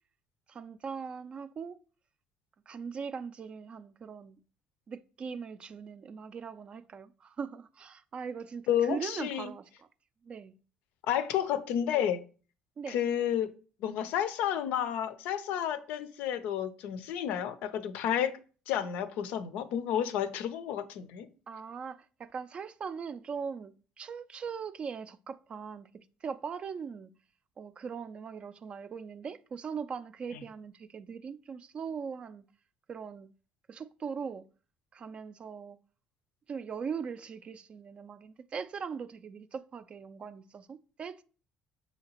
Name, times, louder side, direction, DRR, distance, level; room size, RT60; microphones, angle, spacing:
voice 1, 0.5-1.8 2.7-4.4 4.9-9.9 10.2-10.6 12.8-13.0 21.5-25.9 26.2-27.1 27.6-32.4 32.9-33.3 33.7-34.4 34.9-35.8 36.5-41.2, right 6 dB, 40° right, 0.3 m, -40 dB
voice 2, 8.7-9.5 11.1-12.2 12.9-13.5 13.8-18.4 18.7-21.3, left 9 dB, 75° left, 0.5 m, -31 dB
5.8 x 2.8 x 2.8 m
supercardioid pair, 85°, 3 cm